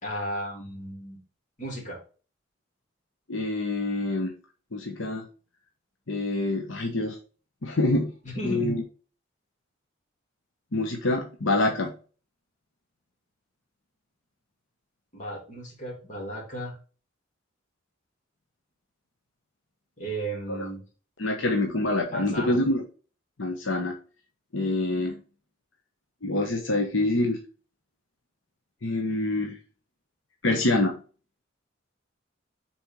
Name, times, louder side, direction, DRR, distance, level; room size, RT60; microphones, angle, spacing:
voice 1, 0.0-1.2 1.6-2.0 8.2-8.8 15.1-16.7 20.0-20.8 22.1-22.5, right 1 dB, 40° left, -2 dB, 3.1 m, -34 dB
voice 2, 3.3-4.3 4.7-5.3 6.1-7.2 7.6-8.1 8.4-8.8 10.7-11.9 20.5-20.7 21.2-22.8 23.4-24.0 24.5-25.2 26.2-27.4 28.8-29.6 30.4-31.0, left 2 dB, 75° left, 2 dB, 1.1 m, -26 dB
5.6 x 4.2 x 4.4 m, 0.37 s
head